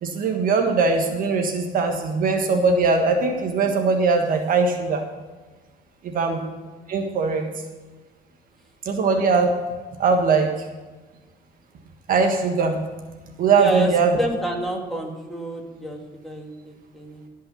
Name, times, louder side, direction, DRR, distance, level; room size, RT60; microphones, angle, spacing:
voice 1, 0.0-5.0 6.0-6.4 6.9-7.4 8.8-9.5 10.0-10.5 12.1-12.8 13.4-14.2, right 4 dB, 55° right, 4 dB, 1.5 m, -20 dB
voice 2, 13.6-13.9 14.2-17.3, right 1 dB, ahead, 0 dB, 2.5 m, -29 dB
17.0 x 5.6 x 7.0 m, 1.3 s
cardioid pair, 110°, 17 cm